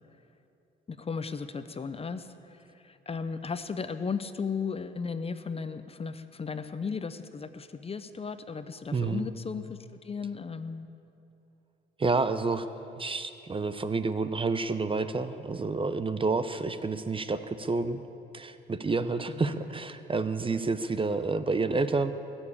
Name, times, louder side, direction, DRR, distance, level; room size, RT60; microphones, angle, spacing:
voice 1, 0.9-10.9 19.3-19.6, left 5 dB, 30° left, 11 dB, 0.7 m, -36 dB
voice 2, 8.9-9.3 12.0-12.7 13.0-18.0 18.3-22.1, right 3 dB, 25° right, 11 dB, 0.7 m, -29 dB
21.0 x 7.3 x 8.6 m, 2.8 s
cardioid pair, 90°, 20 cm